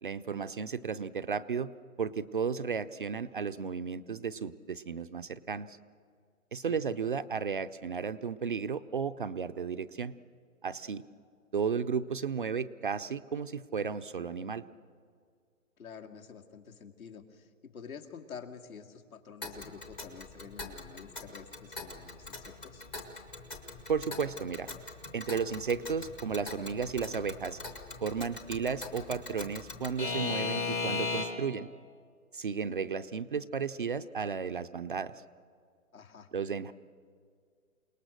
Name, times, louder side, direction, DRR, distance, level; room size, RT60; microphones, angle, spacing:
voice 1, 0.0-1.7 2.0-5.8 6.5-10.1 10.6-11.0 11.5-14.6 23.9-24.7 25.1-27.6 28.0-31.7 32.3-35.1 36.3-36.7, right 6 dB, 40° right, 12 dB, 0.5 m, -34 dB
voice 2, 15.8-22.9 35.9-36.3, left 6 dB, 75° left, 3 dB, 2.4 m, -48 dB
Alarm / Clock, 19.4-31.6, left 3 dB, 10° left, 0.6 m, -39 dB
28.5 x 19.0 x 6.5 m, 2.1 s
hypercardioid pair, 150°, 42 cm